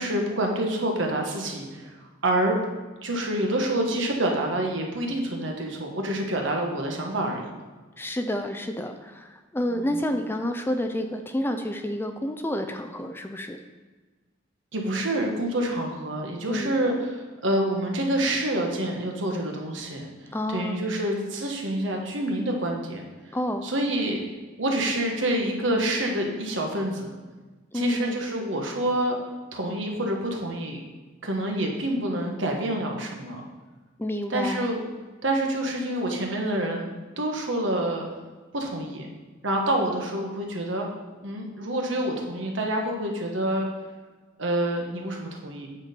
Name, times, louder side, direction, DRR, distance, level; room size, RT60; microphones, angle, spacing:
voice 1, 0.0-1.9 2.2-2.6 3.0-7.5 9.7-9.9 14.7-23.0 23.6-24.2 24.6-27.2 27.7-29.2 29.5-30.8 31.2-33.4 34.3-34.8 35.2-38.1 38.5-39.1 39.4-40.9 41.2-43.7 44.4-45.7, right 1 dB, 70° right, 1 dB, 1.4 m, -27 dB
voice 2, 8.0-13.6 16.5-16.7 20.3-20.8 23.3-23.6 27.7-28.2 34.0-34.6, left 1 dB, 10° left, 6 dB, 0.4 m, -29 dB
8.9 x 4.4 x 5.2 m, 1.3 s
head